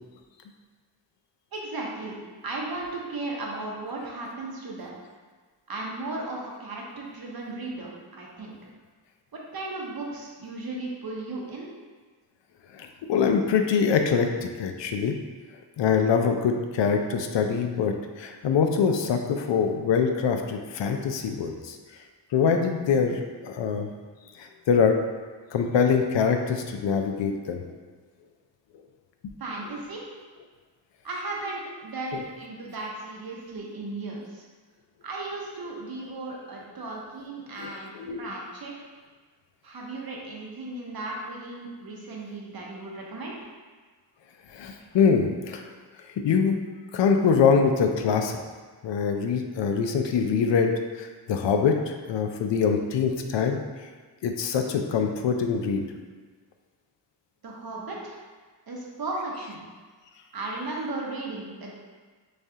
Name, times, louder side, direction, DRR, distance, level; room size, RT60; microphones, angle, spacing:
voice 1, 1.5-2.2 2.4-4.9 5.7-8.5 9.3-11.7 29.4-30.0 31.0-34.4 35.0-37.9 38.2-38.7 39.6-43.4 57.4-58.2 58.7-59.6 60.3-61.7, right 2 dB, 55° right, -2 dB, 0.9 m, -35 dB
voice 2, 12.7-15.1 15.8-21.8 22.3-23.9 24.4-25.0 25.5-27.7 32.1-32.2 37.6-38.2 44.5-45.6 46.2-46.6 46.9-48.4 48.8-53.6 54.2-55.9, left 6 dB, 85° left, 4 dB, 0.5 m, -24 dB
6.4 x 2.4 x 2.7 m, 1.5 s
wide cardioid pair, 105°, 42 cm